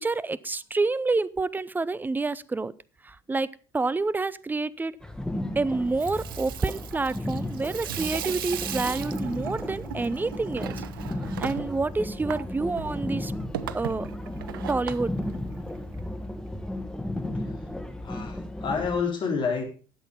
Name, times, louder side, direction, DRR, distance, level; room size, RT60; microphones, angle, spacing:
voice 1, 0.0-2.7 3.0-5.0 5.6-10.8 11.2-13.3 13.7-14.1 14.7-15.1, right 3 dB, 15° right, 19 dB, 0.7 m, -28 dB
sound 1, 5.0-19.0, left 1 dB, 5° left, 1.6 m, -34 dB
Water tap faucet / Sink (filling or washing), 5.8-16.0, right 12 dB, 80° right, 0.6 m, -38 dB
voice 2, 17.3-17.6 18.0-19.7, left 5 dB, 45° left, 2 dB, 4.3 m, -29 dB
12.5 x 8.2 x 5.5 m, 0.37 s
hypercardioid pair, 60°, 11 cm